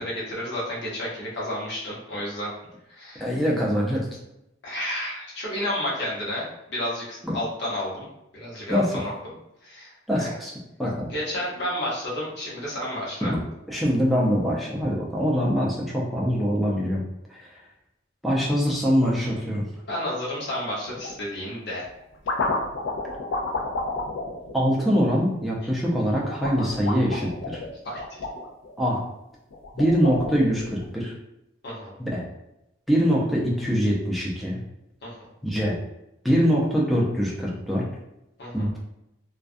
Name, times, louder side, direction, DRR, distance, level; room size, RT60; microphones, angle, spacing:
voice 1, 0.0-2.5 3.0-3.3 4.6-8.1 8.3-9.1 9.6-9.9 10.2-10.4 11.1-13.3 19.9-21.8 27.8-28.2 31.6-31.9 35.0-35.1 38.4-38.7, left 1 dB, 55° left, -6 dB, 0.9 m, -31 dB
voice 2, 3.2-4.1 7.2-7.4 8.7-9.0 10.1-10.5 10.8-11.1 13.2-13.4 13.7-17.0 17.3-17.5 18.2-19.7 24.5-27.6 28.8-29.0 29.7-31.1 32.0-32.2 32.9-34.6 35.4-35.8 36.2-37.9 38.5-38.8, equal, ahead, -4 dB, 0.4 m, -23 dB
sound 1, 20.9-21.2 21.8-25.4 26.2-28.9 29.5-30.8, left 2 dB, 75° left, 0.4 m, -31 dB
2.3 x 2.2 x 2.5 m, 0.87 s
head